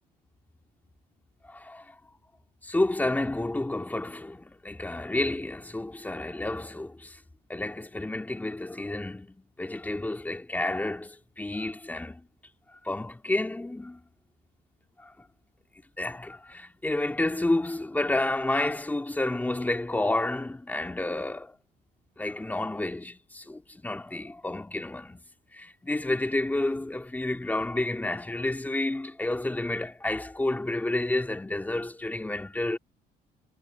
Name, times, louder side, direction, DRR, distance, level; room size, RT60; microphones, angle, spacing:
voice 1, 1.5-2.1 2.6-7.2 7.5-12.3 12.8-14.0 15.0-15.1 16.0-21.6 22.2-25.2 25.5-32.8, left 2 dB, 10° left, 2.5 m, -30 dB
cardioid pair, 110°, 17 cm